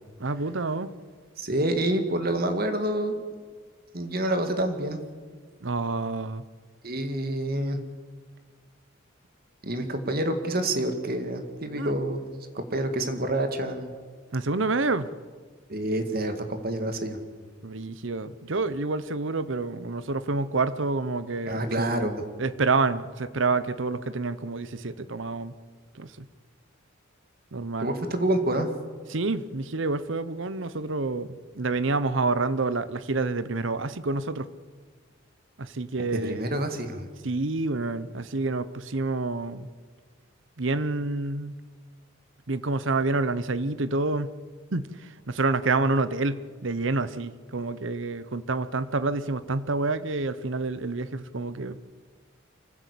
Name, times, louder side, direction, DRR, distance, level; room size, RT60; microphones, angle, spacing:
voice 1, 0.2-0.9 5.6-6.4 11.8-11.9 14.3-15.1 17.6-21.9 22.4-25.5 25.9-26.3 27.5-27.9 29.1-34.5 35.6-36.5 37.2-39.7 40.6-41.6 42.5-44.4 44.7-51.8, right 3 dB, 65° right, 14 dB, 0.9 m, -28 dB
voice 2, 1.4-3.2 3.9-5.0 6.8-7.8 9.6-12.3 12.5-13.9 15.7-17.2 21.5-22.2 27.8-28.7 36.1-37.1, right 1 dB, 45° right, 7 dB, 2.2 m, -27 dB
24.5 x 15.5 x 8.5 m, 1.5 s
head